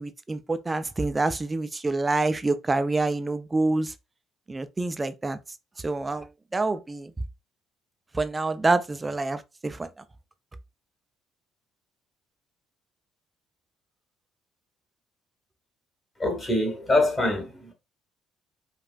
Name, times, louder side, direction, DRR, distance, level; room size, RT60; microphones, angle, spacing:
voice 1, 0.0-3.9 4.5-5.4 5.8-7.1 8.1-9.9, right 3 dB, 20° right, 0.4 m, -27 dB
voice 2, 16.2-17.7, left 2 dB, 30° left, 1.6 m, -24 dB
4.8 x 2.5 x 2.2 m
figure-of-eight pair, 50°, 0 cm